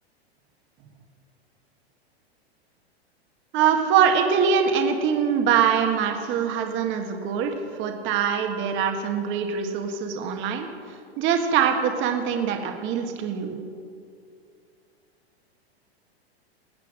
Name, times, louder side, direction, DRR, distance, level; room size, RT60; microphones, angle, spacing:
voice 1, 3.5-10.7 11.2-13.6, right 7 dB, 35° right, 4 dB, 1.6 m, -23 dB
19.0 x 8.4 x 5.0 m, 2.3 s
hypercardioid pair, 120°, 32 cm